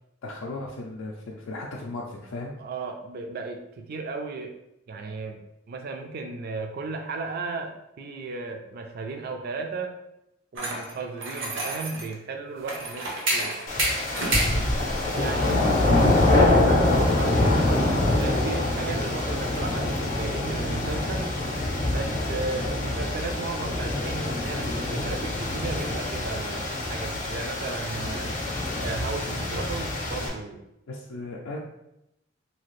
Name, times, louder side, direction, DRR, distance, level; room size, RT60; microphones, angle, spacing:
voice 1, 0.2-2.5 15.1-16.0 28.0-28.4 30.9-31.6, left 2 dB, 90° left, -2 dB, 0.4 m, -36 dB
voice 2, 2.6-4.5 4.9-5.4 5.7-9.9 10.5-13.6 15.1-15.6 16.3-21.3 21.9-28.3 28.8-30.6, right 3 dB, 50° right, 5 dB, 0.3 m, -35 dB
sound 1, 10.6-12.1 12.6-14.5, right 2 dB, 65° right, 0.7 m, -34 dB
sound 2, 12.6-18.3, right 1 dB, 90° right, 1.2 m, -29 dB
sound 3, 13.7-30.3, left 2 dB, 40° left, 0.6 m, -25 dB
2.8 x 2.4 x 3.1 m, 0.85 s
head